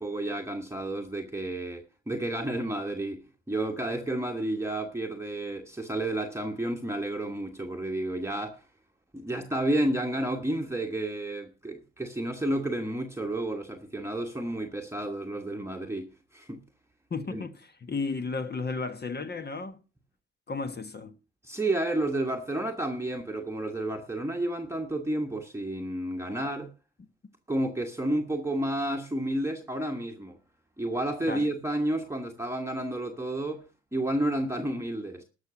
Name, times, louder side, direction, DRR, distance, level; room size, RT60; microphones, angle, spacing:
voice 1, 0.0-8.6 9.1-16.6 17.3-17.5 21.4-26.7 27.5-30.4 30.8-35.2, right 1 dB, 10° right, 1.3 m, -31 dB
voice 2, 17.1-19.8 20.5-21.1 31.3-31.5, left 4 dB, 35° left, 1.3 m, -33 dB
13.0 x 6.0 x 7.4 m
cardioid pair, 90°, 30 cm